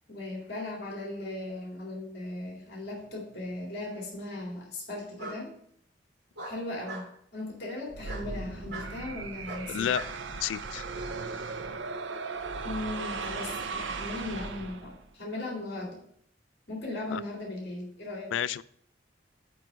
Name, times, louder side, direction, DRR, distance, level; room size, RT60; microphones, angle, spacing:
voice 1, 0.1-5.6 6.4-9.9 12.6-16.0 16.7-18.3, left 2 dB, 60° left, -2 dB, 2.2 m, -38 dB
Bark, 3.0-3.7 5.2-5.4 6.4-7.1 8.0-8.3 8.7-8.9 9.4-10.2, right 3 dB, 70° right, 1.9 m, -40 dB
sound 1, 7.9-15.1, right 4 dB, 85° right, 0.6 m, -37 dB
voice 2, 9.7-10.0 10.4-10.8 17.1-17.2 18.3-18.6, left 9 dB, 85° left, 17 dB, 0.3 m, -30 dB
9.0 x 3.1 x 6.2 m, 0.67 s
head